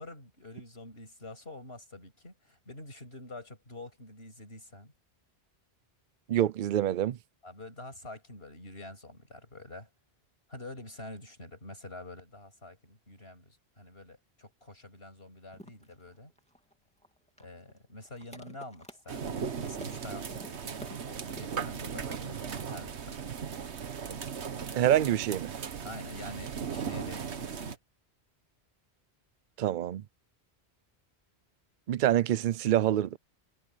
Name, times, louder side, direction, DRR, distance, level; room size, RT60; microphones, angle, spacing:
voice 1, 0.0-4.9 7.4-9.9 10.5-16.3 17.4-23.2 25.8-27.8, left 2 dB, 65° left, 6.9 m, -47 dB
voice 2, 6.3-7.2 24.7-25.6 29.6-30.0 31.9-33.2, right 12 dB, 55° right, 0.7 m, -26 dB
sound 1, 15.5-23.8, equal, 5° left, 2.6 m, -52 dB
sound 2, 19.1-27.8, right 6 dB, 85° right, 1.4 m, -37 dB
omnidirectional pair, 1.1 m